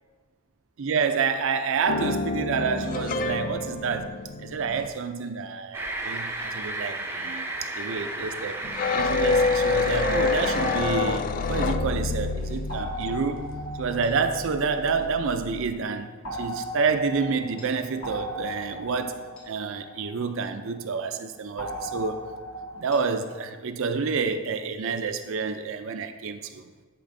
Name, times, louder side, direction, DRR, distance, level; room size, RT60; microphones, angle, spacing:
voice 1, 0.8-13.5 13.7-19.2 19.5-22.3 22.8-26.7, right 5 dB, 70° right, 0.5 m, -28 dB
sound 1, 1.9-4.9 8.6-15.7, left 4 dB, 40° left, 0.3 m, -28 dB
sound 2, 5.7-10.8, right 2 dB, 10° right, 0.5 m, -33 dB
sound 3, 12.7-15.5 16.2-20.8 21.6-23.4, equal, 65° left, 1.6 m, -38 dB
10.5 x 4.3 x 2.7 m
head